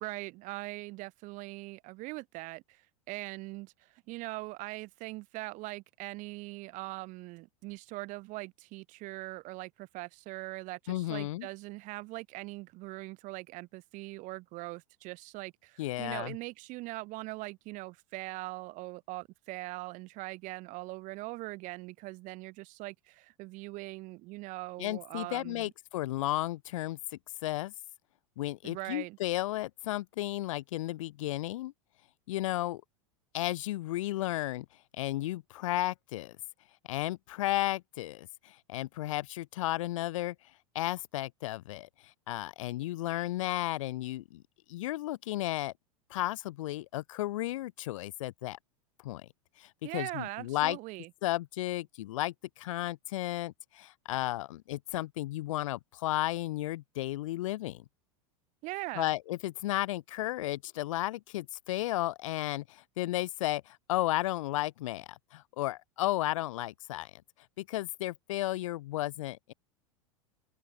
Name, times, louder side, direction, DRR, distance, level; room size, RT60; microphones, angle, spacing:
voice 1, 0.0-25.7 28.6-29.2 49.8-51.1 58.6-59.1, right 22 dB, 45° right, 1.1 m, -41 dB
voice 2, 10.9-11.5 15.8-16.3 24.8-27.0 27.4-27.7 28.4-31.7 32.3-32.8 33.3-34.7 34.9-36.4 36.9-40.4 40.7-41.9 42.3-44.4 44.7-45.7 46.1-48.6 49.0-49.3 49.6-50.8 51.2-57.8 59.0-67.2 67.6-69.5, left 16 dB, 65° left, 0.6 m, -33 dB
hypercardioid pair, 90°, 18 cm